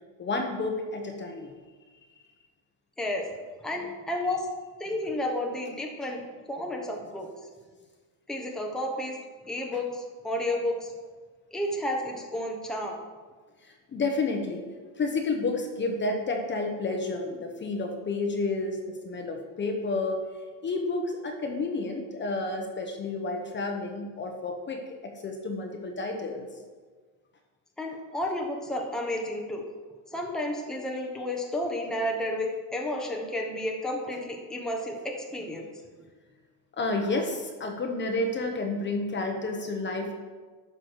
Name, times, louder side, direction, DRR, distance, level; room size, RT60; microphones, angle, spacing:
voice 1, 0.2-1.5 13.6-14.6 15.0-20.2 20.6-26.5 34.0-34.1 36.7-40.1, left 3 dB, 25° left, 3 dB, 1.1 m, -30 dB
voice 2, 3.0-3.3 3.6-4.5 4.8-6.2 6.5-7.3 8.3-9.2 9.5-10.9 11.5-13.0 27.8-29.6 30.1-35.7, left 1 dB, ahead, 0 dB, 1.1 m, -31 dB
11.5 x 6.1 x 4.7 m, 1.4 s
cardioid pair, 135°, 42 cm